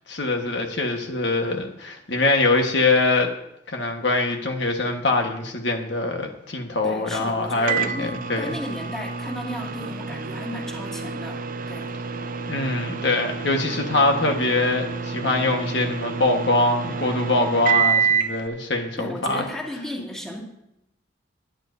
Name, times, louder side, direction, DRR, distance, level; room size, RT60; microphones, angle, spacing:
voice 1, 0.1-3.3 3.7-8.5 12.5-19.4, left 2 dB, 65° left, 3 dB, 1.4 m, -23 dB
voice 2, 6.8-11.9 19.0-20.4, left 1 dB, 5° left, -3 dB, 2.2 m, -35 dB
Microwave oven, 7.7-18.4, right 6 dB, 45° right, 0.6 m, -28 dB
21.0 x 10.5 x 2.7 m, 0.82 s
head